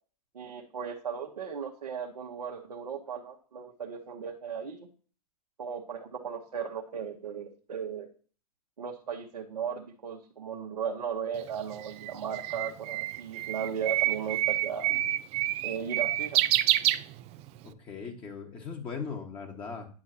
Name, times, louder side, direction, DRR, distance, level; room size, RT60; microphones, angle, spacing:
voice 1, 0.3-4.9 5.6-8.1 8.8-14.9 15.6-16.4, right 7 dB, 80° right, -1 dB, 1.2 m, -36 dB
Bird, 11.4-17.6, right 15 dB, 30° right, 0.4 m, -28 dB
voice 2, 17.6-19.9, left 5 dB, 25° left, 1 dB, 1.5 m, -39 dB
9.9 x 5.8 x 2.8 m, 0.40 s
hypercardioid pair, 105°, 20 cm